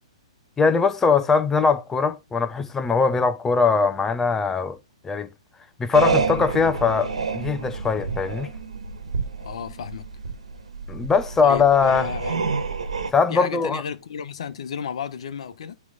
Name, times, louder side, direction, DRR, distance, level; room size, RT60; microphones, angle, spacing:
voice 1, 0.6-4.8 5.0-5.3 5.8-8.5 10.9-12.1 13.1-13.8, left 5 dB, 10° left, 0.9 m, -21 dB
sound 1, 5.9-13.1, right 4 dB, 85° right, 1.5 m, -28 dB
voice 2, 9.4-10.1 11.4-12.6 13.3-15.8, left 7 dB, 65° left, 1.0 m, -33 dB
9.4 x 3.4 x 3.8 m
hypercardioid pair, 130°, 3 cm